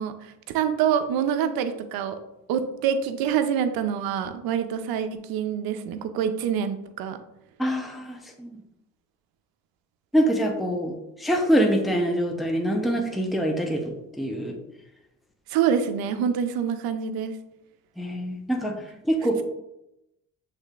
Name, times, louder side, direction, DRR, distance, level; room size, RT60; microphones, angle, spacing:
voice 1, 0.0-2.2 2.5-7.2 15.5-17.3, right 8 dB, 80° right, 9 dB, 0.6 m, -26 dB
voice 2, 7.6-8.6 10.1-10.9 11.2-14.6 18.0-18.8 19.0-19.4, equal, ahead, 2 dB, 0.7 m, -25 dB
6.4 x 3.3 x 2.4 m, 0.89 s
supercardioid pair, 65°, 36 cm